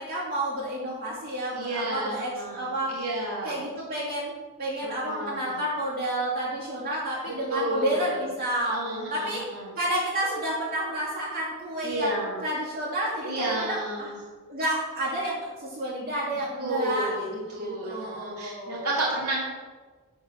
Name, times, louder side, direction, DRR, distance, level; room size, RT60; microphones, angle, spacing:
voice 1, 0.0-3.0 3.4-4.3 4.6-8.8 9.1-9.4 9.8-14.1 14.5-17.3 17.6-18.9, right 1 dB, 40° right, -8 dB, 2.7 m, -30 dB
voice 2, 1.5-3.6 4.8-5.5 7.3-8.2 8.6-9.7 11.8-12.4 13.2-14.2 16.5-19.4, right 1 dB, 85° right, -6 dB, 2.7 m, -31 dB
10.5 x 4.7 x 6.3 m, 1.4 s
head